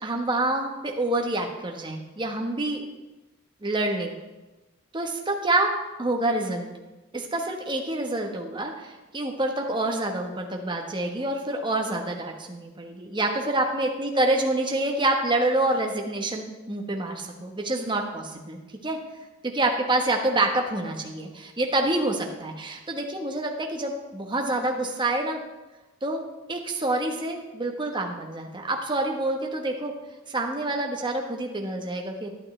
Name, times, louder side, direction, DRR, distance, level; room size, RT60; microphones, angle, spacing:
voice 1, 0.0-2.8 3.6-4.1 4.9-6.7 7.1-19.0 19.4-25.4 26.0-26.2 26.5-29.9 30.3-32.3, right 2 dB, 20° right, 2 dB, 1.2 m, -27 dB
11.5 x 11.0 x 3.3 m, 1.1 s
head